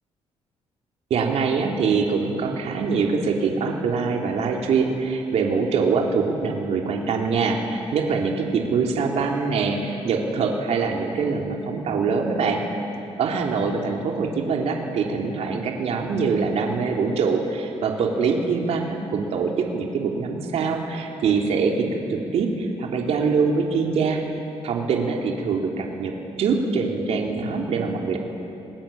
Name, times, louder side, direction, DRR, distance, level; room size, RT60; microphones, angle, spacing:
voice 1, 1.1-12.6 13.2-24.2 24.6-26.1 26.4-28.2, right 5 dB, 75° right, 0 dB, 3.5 m, -24 dB
29.0 x 21.0 x 8.8 m, 2.7 s
cardioid pair, 115°, 11 cm